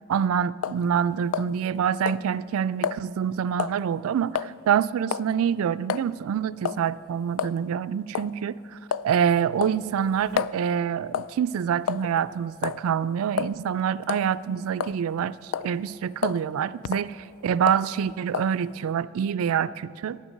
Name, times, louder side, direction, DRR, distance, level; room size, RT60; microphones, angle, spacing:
voice 1, 0.1-8.8 9.0-20.2, right 8 dB, 75° right, 16 dB, 0.3 m, -26 dB
sound 1, 0.6-0.8 1.3-1.8 2.1-2.2 2.8-3.0 3.6-3.8 4.4-4.5 5.1-5.3 5.9-6.1 6.7-6.9 7.4-7.6 8.1-8.3 8.9-9.1 9.6-10.6 11.1-11.4 11.9-12.2 12.6-12.8 13.4-13.5 14.0-14.3 14.8-15.2 15.5-15.7 16.2-16.4 16.8-17.1 17.7-17.9 18.3-18.5, left 8 dB, 75° left, 0.3 m, -29 dB
12.0 x 9.5 x 6.5 m, 2.2 s
head